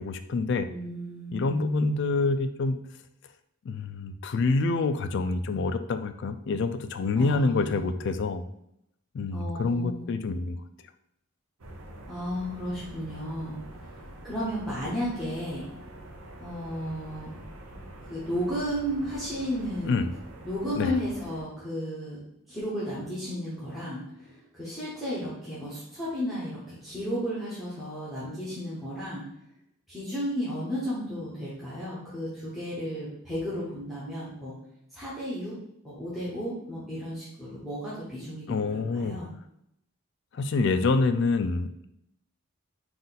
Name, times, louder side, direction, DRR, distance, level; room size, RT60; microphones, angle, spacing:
voice 1, 0.0-0.7 1.3-2.8 3.7-8.4 9.1-10.6 19.9-20.1 20.8-20.9 38.5-39.2 40.3-41.9, left 3 dB, 55° left, 10 dB, 0.3 m, -27 dB
voice 2, 0.7-1.8 7.1-7.8 9.3-10.2 12.1-15.7 16.4-17.3 18.0-20.0 20.4-22.2 22.5-29.2 29.9-34.6 34.9-35.5 35.8-39.3, equal, ahead, -10 dB, 0.9 m, -33 dB
sound 1, 11.6-21.4, right 1 dB, 85° right, 0.8 m, -45 dB
3.8 x 2.5 x 4.0 m, 0.77 s
head